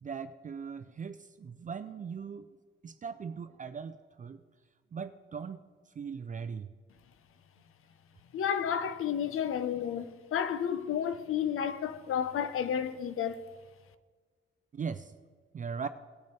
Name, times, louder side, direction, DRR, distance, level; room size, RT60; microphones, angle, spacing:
voice 1, 0.0-2.5 2.8-4.4 4.9-5.6 6.0-6.7 14.7-15.1 15.5-15.9, right 6 dB, 40° right, 0.4 m, -39 dB
voice 2, 8.3-13.4, left 8 dB, 85° left, 0.7 m, -31 dB
18.5 x 6.2 x 4.4 m
wide cardioid pair, 140°, 21 cm